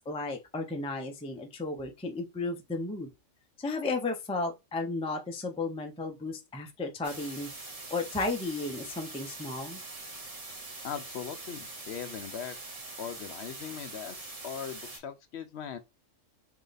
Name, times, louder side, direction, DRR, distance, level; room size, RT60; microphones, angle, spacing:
voice 1, 0.0-3.1 3.6-7.5 7.9-9.8, left 3 dB, 10° left, 0.3 m, -34 dB
sound 1, 7.0-15.0, right 2 dB, 35° right, 0.8 m, -43 dB
voice 2, 10.8-12.6 13.0-15.8, left 8 dB, 65° left, 0.8 m, -40 dB
3.2 x 2.8 x 3.9 m
omnidirectional pair, 1.3 m